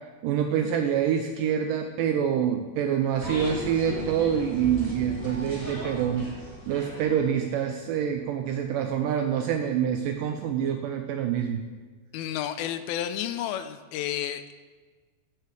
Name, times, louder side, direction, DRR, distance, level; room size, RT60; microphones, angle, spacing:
voice 1, 0.2-6.3 6.7-11.6, right 8 dB, 80° right, 5 dB, 1.9 m, -26 dB
sound 1, 3.2-7.7, equal, 5° left, 2.1 m, -36 dB
voice 2, 12.1-14.5, left 11 dB, 85° left, 11 dB, 2.4 m, -31 dB
13.5 x 6.7 x 4.7 m, 1.4 s
omnidirectional pair, 4.4 m